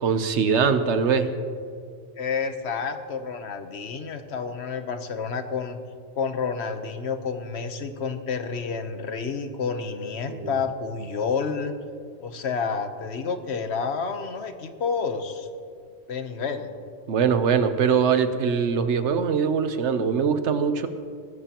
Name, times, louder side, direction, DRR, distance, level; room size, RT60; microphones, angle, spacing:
voice 1, 0.0-1.3 10.3-10.5 17.1-20.9, right 6 dB, 80° right, 10 dB, 1.1 m, -22 dB
voice 2, 2.2-5.8 6.1-11.7 12.2-15.5 16.1-16.7, left 5 dB, 70° left, 8 dB, 1.2 m, -29 dB
19.0 x 14.0 x 3.0 m, 2.2 s
omnidirectional pair, 1.2 m